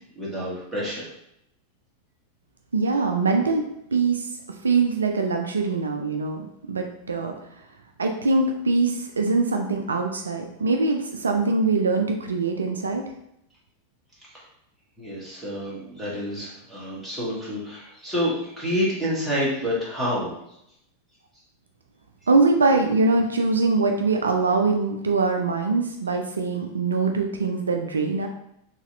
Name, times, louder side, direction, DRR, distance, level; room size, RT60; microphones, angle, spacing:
voice 1, 0.1-1.1 14.2-14.3 15.0-20.3, equal, 5° right, -7 dB, 1.5 m, -28 dB
voice 2, 2.7-3.6 3.9-4.3 4.6-7.3 8.0-13.0 22.3-28.3, right 3 dB, 75° right, 3 dB, 0.3 m, -23 dB
4.0 x 2.9 x 2.6 m, 0.77 s
figure-of-eight pair, 90°, 0 cm